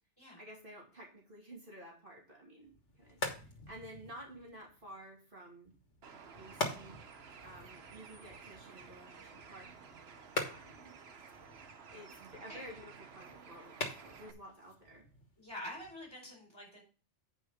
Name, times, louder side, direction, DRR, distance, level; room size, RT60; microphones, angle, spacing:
voice 1, 0.4-3.2 3.7-5.7 6.4-7.0 7.4-9.7 10.4-10.9 11.9-15.0, equal, 50° right, -3 dB, 2.7 m, -52 dB
sound 1, 2.6-16.1, left 2 dB, 80° left, 1.9 m, -45 dB
Bird, 6.0-14.3, right 6 dB, 65° right, 1.1 m, -54 dB
voice 2, 12.3-12.7 15.4-16.8, left 1 dB, 20° left, -2 dB, 4.6 m, -47 dB
8.9 x 5.4 x 5.0 m, 0.36 s
omnidirectional pair, 1.2 m